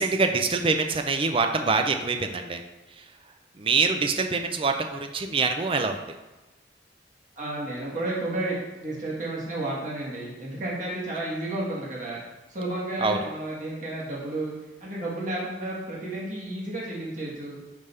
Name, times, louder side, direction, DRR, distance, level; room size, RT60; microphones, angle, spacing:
voice 1, 0.0-2.6 2.9-3.1 3.5-6.0 13.0-13.2, right 4 dB, 30° right, 6 dB, 0.4 m, -25 dB
voice 2, 7.4-12.2 12.5-14.5 14.8-17.6, right 1 dB, 45° right, -6 dB, 1.5 m, -32 dB
5.1 x 3.3 x 5.4 m, 1.1 s
head